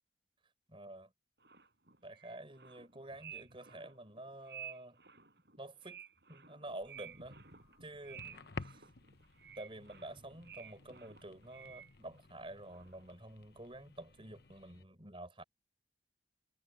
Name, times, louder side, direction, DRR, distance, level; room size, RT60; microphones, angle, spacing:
voice 1, 0.7-1.1 2.0-5.0 5.6-6.0 6.3-7.4 7.8-8.9 9.6-15.4, right 1 dB, 30° right, 4.7 m, -49 dB
sound 1, 1.4-12.4 12.6-13.2, right 8 dB, 60° right, 7.8 m, -54 dB
sound 2, 6.7-14.8, left 3 dB, 60° left, 1.0 m, -53 dB
head